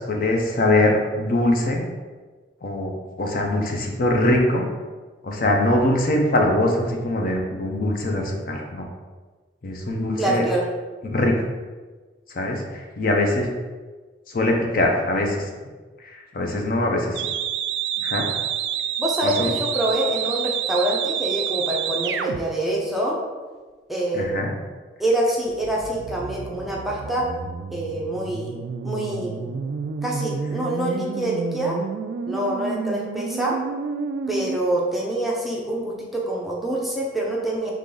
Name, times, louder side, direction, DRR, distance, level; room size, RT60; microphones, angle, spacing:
voice 1, 0.1-1.8 2.6-4.6 5.2-8.8 9.6-10.4 11.0-11.4 12.3-13.5 14.3-15.4 16.0-17.3 18.0-18.3 19.2-19.5 24.1-24.5, left 1 dB, 50° left, 1 dB, 0.6 m, -22 dB
voice 2, 10.2-10.7 19.0-23.2 23.9-24.5 25.0-27.3 27.7-28.5 28.8-29.5 30.0-31.8 32.3-33.6 34.3-37.7, right 1 dB, ahead, -3 dB, 0.5 m, -25 dB
sound 1, 17.2-22.4 25.5-34.6, right 7 dB, 70° right, 0.3 m, -29 dB
3.6 x 3.2 x 3.9 m, 1.3 s
head